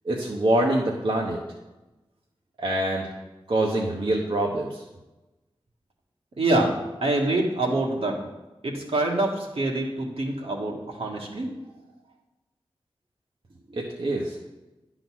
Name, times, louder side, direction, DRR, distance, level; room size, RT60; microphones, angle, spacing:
voice 1, 0.0-1.4 2.6-3.1 3.5-4.8 13.7-14.4, right 1 dB, 60° right, -2 dB, 1.1 m, -25 dB
voice 2, 6.4-6.7 7.0-8.2 8.6-11.5, right 2 dB, 75° right, -1 dB, 1.6 m, -25 dB
9.9 x 3.9 x 6.2 m, 1.1 s
cardioid pair, 40°, 10 cm